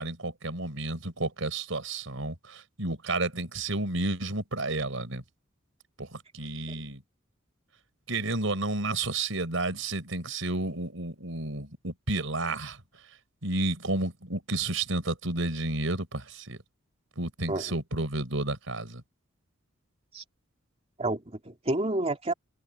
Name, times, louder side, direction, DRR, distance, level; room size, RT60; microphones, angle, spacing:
voice 1, 0.0-5.2 6.0-7.0 8.1-12.8 13.4-16.6 17.2-19.0, right 2 dB, 85° right, 4.2 m, -31 dB
voice 2, 21.0-22.3, right 2 dB, 30° right, 2.7 m, -29 dB
head